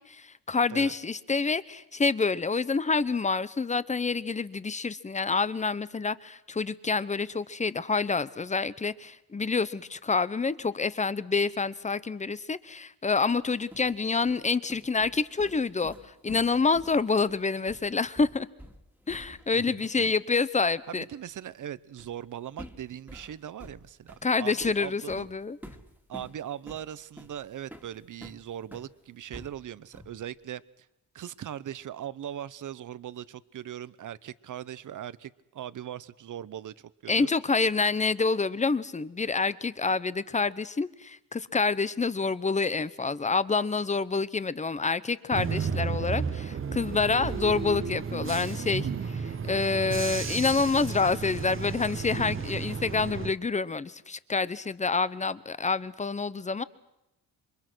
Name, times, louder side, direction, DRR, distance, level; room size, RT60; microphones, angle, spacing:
voice 1, 0.1-18.5 19.1-21.0 24.2-25.6 37.1-56.6, left 4 dB, 20° left, 17 dB, 0.8 m, -27 dB
sound 1, 13.3-19.6 19.8-20.0 22.0-22.2 22.6-28.9 29.3-30.2, equal, 5° right, 2.1 m, -49 dB
voice 2, 20.9-25.3 26.1-30.9 31.1-37.3 49.3-49.5, right 10 dB, 55° right, 18 dB, 0.9 m, -40 dB
Bus / Engine, 45.3-53.3, right 6 dB, 35° right, 1.0 m, -33 dB
28.0 x 25.0 x 6.2 m, 0.87 s
wide cardioid pair, 150°, 36 cm